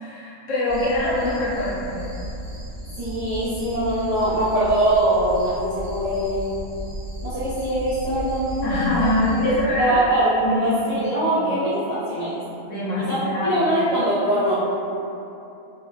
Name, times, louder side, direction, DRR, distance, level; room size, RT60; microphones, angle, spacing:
voice 1, 0.0-2.1 8.6-10.0 10.4-11.0 11.3-11.6 12.7-13.8, left 1 dB, 70° left, -8 dB, 1.1 m, -24 dB
sound 1, 0.7-9.6, equal, 10° right, 0.8 m, -35 dB
voice 2, 3.0-6.6 7.2-9.1 9.4-12.4 13.0-14.5, right 1 dB, 55° right, -13 dB, 0.4 m, -22 dB
2.8 x 2.7 x 2.4 m, 2.8 s
omnidirectional pair, 1.4 m